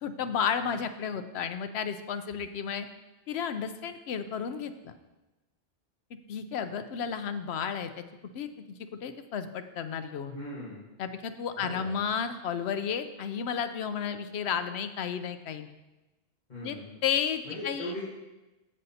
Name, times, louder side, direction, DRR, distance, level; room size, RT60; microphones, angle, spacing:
voice 1, 0.0-2.9 3.3-5.0 6.3-8.0 8.3-8.5 9.0-10.3 11.0-15.7 16.6-16.8 17.0-17.9, left 7 dB, 90° left, 9 dB, 0.9 m, -32 dB
voice 2, 10.3-10.9 11.6-12.0 16.5-17.0 17.4-18.1, left 1 dB, 45° left, -9 dB, 1.8 m, -39 dB
16.0 x 5.4 x 2.8 m, 1.1 s
omnidirectional pair, 1.0 m